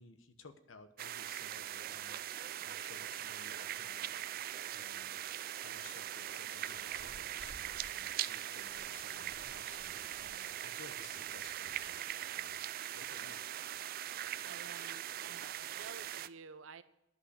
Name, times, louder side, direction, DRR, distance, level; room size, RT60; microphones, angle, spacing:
voice 1, 0.0-2.1 2.6-4.1 4.7-5.2 5.6-13.4, left 4 dB, 85° left, 9 dB, 1.0 m, -57 dB
sound 1, 1.0-16.3, right 12 dB, 50° right, 0.3 m, -41 dB
sound 2, 6.6-11.8, equal, 65° left, 4.9 m, -60 dB
voice 2, 14.4-16.8, right 5 dB, 80° right, 13 dB, 0.6 m, -52 dB
11.0 x 6.0 x 8.0 m, 0.90 s
head